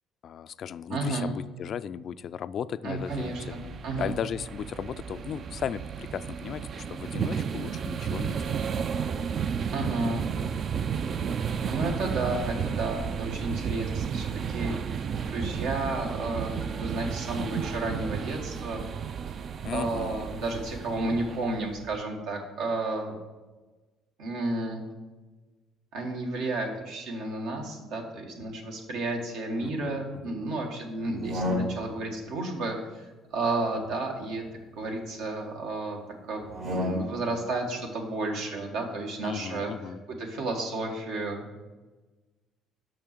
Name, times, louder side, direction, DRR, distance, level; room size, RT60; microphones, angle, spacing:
voice 1, 0.2-8.6 19.6-20.4 29.6-30.5 39.2-40.0, left 8 dB, 55° left, 15 dB, 0.3 m, -36 dB
voice 2, 0.9-1.3 2.8-4.1 9.7-10.2 11.7-14.8 15.3-18.8 19.7-23.1 24.2-24.8 25.9-34.4 34.7-36.0 36.2-39.7 40.2-41.4, right 2 dB, 80° right, 1 dB, 1.7 m, -32 dB
sound 1, 3.0-22.0, right 7 dB, 50° right, 0.4 m, -33 dB
sound 2, 31.0-32.1 33.4-35.0 36.4-37.4, left 1 dB, 65° right, 2.7 m, -34 dB
6.3 x 5.8 x 6.7 m, 1.2 s
cardioid pair, 95°, 0 cm